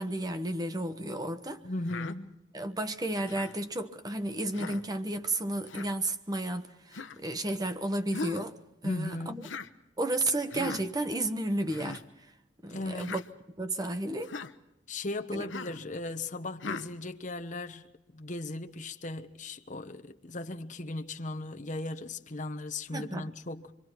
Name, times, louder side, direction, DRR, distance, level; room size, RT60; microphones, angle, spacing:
voice 1, 0.0-1.6 2.5-8.6 8.8-9.4 10.0-12.0 12.6-13.2 13.6-14.3 15.3-15.5 22.9-23.3, right 1 dB, 20° right, 1.1 m, -32 dB
voice 2, 1.6-2.4 8.8-9.5 12.7-13.1 14.9-23.7, left 2 dB, 40° left, 1.0 m, -37 dB
Human voice, 1.9-2.2 3.3-3.6 4.5-4.8 5.7-5.9 6.9-7.2 8.1-8.5 9.4-9.7 10.5-10.8 11.7-12.0 13.0-13.3 14.2-14.5 15.5-15.8 16.6-16.9, left 4 dB, 90° left, 0.9 m, -39 dB
28.0 x 23.5 x 4.6 m
head